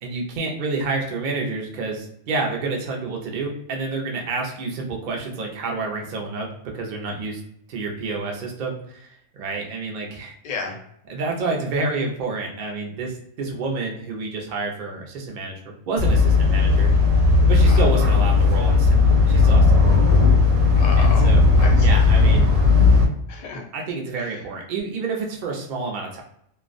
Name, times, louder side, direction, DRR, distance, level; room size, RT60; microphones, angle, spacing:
voice 1, 0.0-6.5 6.7-7.4 7.7-10.3 11.1-15.6 15.9-16.9 17.5-19.9 21.0-21.4 21.8-22.5 23.7-26.2, right 3 dB, 55° right, 0 dB, 0.6 m, -29 dB
voice 2, 10.4-10.8 17.5-17.8 20.8-22.0 23.3-23.6 24.2-24.4, left 4 dB, 55° left, 1 dB, 0.5 m, -32 dB
sound 1, 16.0-23.1, left 4 dB, 80° right, 0.9 m, -16 dB
2.4 x 2.1 x 2.4 m, 0.71 s
omnidirectional pair, 1.3 m